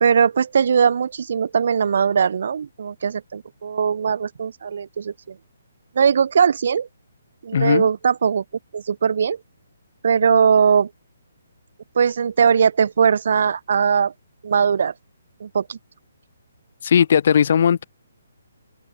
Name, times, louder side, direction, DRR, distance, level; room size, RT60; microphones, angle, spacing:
voice 1, 0.0-5.3 6.0-6.9 7.4-8.4 8.7-9.4 10.0-10.9 12.0-14.1 14.4-14.9 15.4-15.8, right 7 dB, 60° right, 0.6 m, -19 dB
voice 2, 7.5-7.9 16.8-17.8, left 8 dB, 55° left, 0.8 m, -17 dB
open air
hypercardioid pair, 145°, 0 cm